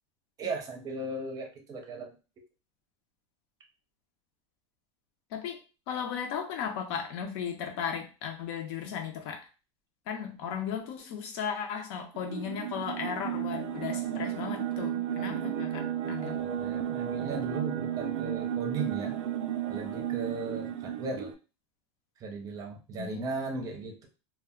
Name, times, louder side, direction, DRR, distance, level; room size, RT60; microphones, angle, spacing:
voice 1, 0.4-2.1 16.3-19.2 19.7-21.3 22.2-24.1, right 3 dB, 25° right, 2 dB, 0.6 m, -37 dB
voice 2, 5.9-9.4 10.1-16.4 23.0-23.4, left 7 dB, 55° left, 4 dB, 0.7 m, -36 dB
sound 1, 12.1-21.3, right 10 dB, 90° right, 0.4 m, -33 dB
2.2 x 2.1 x 3.5 m, 0.32 s
supercardioid pair, 155°, 15 cm